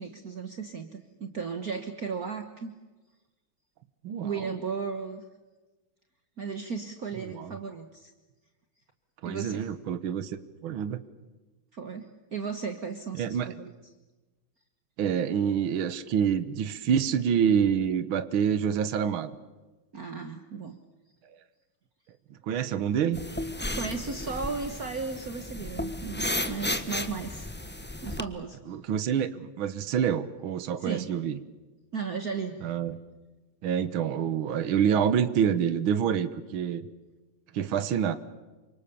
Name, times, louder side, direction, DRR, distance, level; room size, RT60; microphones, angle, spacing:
voice 1, 0.0-2.7 4.2-5.2 6.4-8.1 9.2-9.7 11.7-13.7 19.9-20.8 23.7-27.5 28.0-28.6 30.8-31.1 31.9-32.6, right 5 dB, 50° right, 7 dB, 1.7 m, -35 dB
voice 2, 4.0-4.5 7.2-7.6 9.2-10.4 10.6-11.0 13.1-13.5 15.0-19.3 22.4-23.2 28.7-31.4 32.6-33.0 33.6-36.9 37.5-38.2, right 8 dB, 75° right, 13 dB, 1.9 m, -27 dB
sound 1, 23.1-28.2, left 1 dB, 10° left, 0.8 m, -34 dB
28.5 x 25.5 x 7.0 m, 1.2 s
omnidirectional pair, 2.3 m